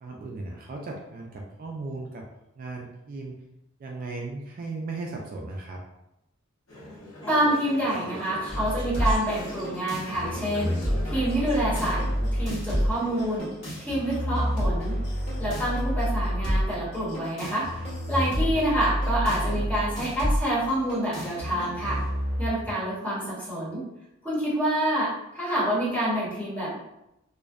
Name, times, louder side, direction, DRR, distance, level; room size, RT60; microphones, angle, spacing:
voice 1, 0.0-2.2 2.6-3.4 3.8-5.8 18.2-18.6 22.6-22.7, right 3 dB, 45° right, 0 dB, 0.3 m, -36 dB
Conversation / Chatter, 6.7-13.4, equal, 90° left, 0.7 m, -41 dB
voice 2, 7.3-10.8 11.0-12.0 12.3-13.5 13.8-14.9 15.4-17.7 18.1-22.0 22.4-23.8 24.2-26.8, right 1 dB, 10° left, -8 dB, 0.9 m, -27 dB
sound 1, 8.5-22.5, equal, 55° left, 1.3 m, -29 dB
2.5 x 2.1 x 2.3 m, 0.87 s
head